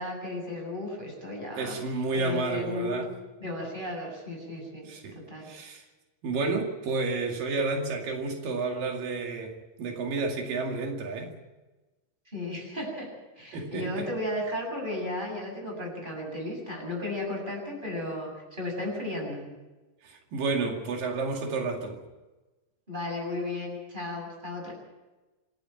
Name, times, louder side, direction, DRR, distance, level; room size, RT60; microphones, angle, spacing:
voice 1, 0.0-1.8 2.1-3.0 3.4-4.9 5.1-5.5 12.3-13.1 13.4-19.5 22.9-24.7, left 1 dB, 15° right, 0 dB, 7.6 m, -34 dB
voice 2, 1.6-3.1 4.9-5.2 5.4-5.8 6.2-11.3 13.5-14.1 20.0-22.0, right 3 dB, 85° right, 2 dB, 4.0 m, -31 dB
27.0 x 12.0 x 9.1 m, 1.1 s
omnidirectional pair, 3.8 m